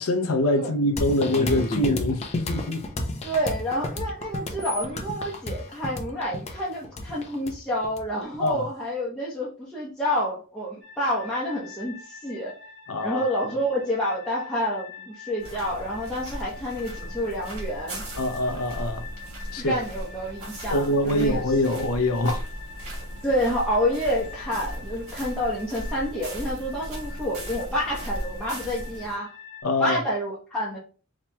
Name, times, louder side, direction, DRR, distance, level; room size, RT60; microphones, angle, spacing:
voice 1, 0.0-2.9 8.4-8.7 12.9-13.4 18.2-19.0 19.5-19.8 20.7-22.4 29.6-30.0, left 1 dB, 80° left, 0.6 m, -24 dB
sound 1, 1.0-8.5, left 1 dB, 30° left, 0.5 m, -31 dB
voice 2, 3.2-12.5 13.0-18.0 19.6-21.4 23.2-29.3 29.8-30.8, equal, 5° left, 0.8 m, -28 dB
sound 2, 10.8-29.6, left 6 dB, 35° right, 1.2 m, -45 dB
sound 3, 15.4-29.1, equal, 90° right, 1.5 m, -37 dB
4.2 x 2.9 x 2.2 m
head